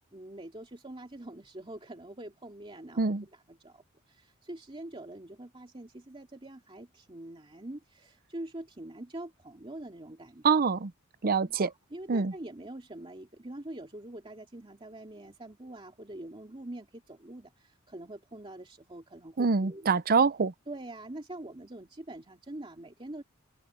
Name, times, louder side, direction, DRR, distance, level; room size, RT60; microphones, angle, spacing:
voice 1, 0.1-10.5 11.5-19.8 20.7-23.2, right 1 dB, 25° right, 2.3 m, -44 dB
voice 2, 10.4-10.9 11.2-11.7 12.1-12.3 19.4-20.5, right 5 dB, 45° right, 0.6 m, -25 dB
head